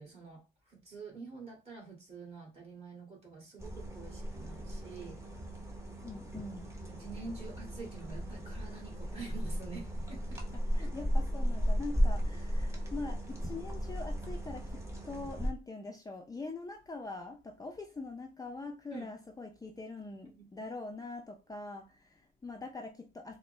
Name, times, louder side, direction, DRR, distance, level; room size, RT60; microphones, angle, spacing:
voice 1, 0.0-5.2 6.9-10.4 10.8-10.9 18.9-19.1 20.4-20.7, right 4 dB, 30° right, 2.2 m, -47 dB
sound 1, 3.6-15.5, equal, 15° right, 1.1 m, -35 dB
voice 2, 6.0-6.7 10.7-23.4, left 3 dB, 20° left, 0.5 m, -43 dB
3.9 x 2.2 x 3.3 m
cardioid pair, 90°, 20 cm